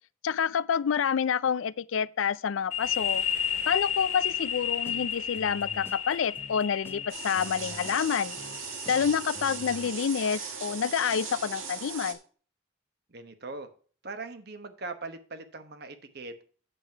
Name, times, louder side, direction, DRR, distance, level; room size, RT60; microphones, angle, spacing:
voice 1, 0.2-3.2 3.7-8.4 8.9-12.2, left 7 dB, 75° left, 0.4 m, -28 dB
sound 1, 2.7-10.2, left 9 dB, 40° left, 1.7 m, -33 dB
sound 2, 4.8-9.9, left 1 dB, 10° left, 0.5 m, -48 dB
sound 3, 7.1-12.1, right 6 dB, 80° right, 1.8 m, -38 dB
voice 2, 13.1-13.7 14.0-16.4, right 3 dB, 50° right, 1.1 m, -40 dB
8.2 x 7.7 x 4.5 m
head